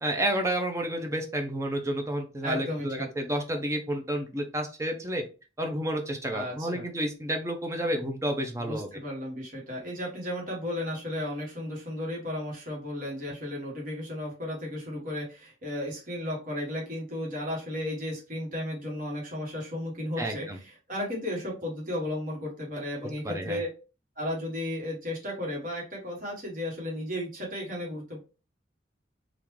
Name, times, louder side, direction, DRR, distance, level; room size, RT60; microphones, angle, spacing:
voice 1, 0.0-5.2 5.6-8.9 20.2-20.6 23.2-23.6, right 1 dB, 15° right, 3 dB, 0.4 m, -30 dB
voice 2, 2.4-3.1 6.3-6.9 8.6-23.7 24.2-28.2, left 1 dB, 45° right, -3 dB, 1.2 m, -34 dB
3.5 x 2.4 x 3.0 m, 0.32 s
head